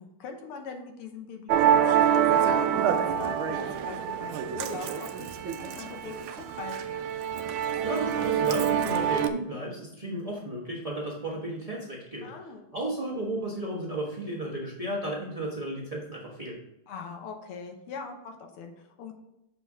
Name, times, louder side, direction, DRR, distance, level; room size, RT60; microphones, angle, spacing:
voice 1, 0.0-6.8 12.2-12.7 16.9-19.1, left 5 dB, 85° left, 4 dB, 1.9 m, -41 dB
Musical instrument, 1.5-9.3, right 9 dB, 75° right, 1.4 m, -26 dB
voice 2, 7.6-12.3 12.7-16.6, right 1 dB, 20° right, -4 dB, 1.1 m, -34 dB
6.8 x 4.5 x 4.8 m, 0.86 s
omnidirectional pair, 2.4 m